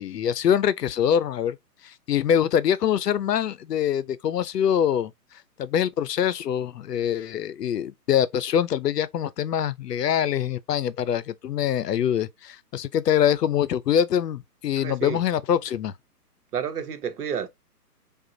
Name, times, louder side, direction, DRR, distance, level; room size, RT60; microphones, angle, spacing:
voice 1, 0.0-1.6 1.8-5.1 5.6-15.9, left 9 dB, 80° left, 0.6 m, -24 dB
voice 2, 14.8-15.2 16.5-17.5, right 7 dB, 70° right, 1.0 m, -30 dB
4.9 x 2.4 x 2.7 m
hypercardioid pair, 140°, 47 cm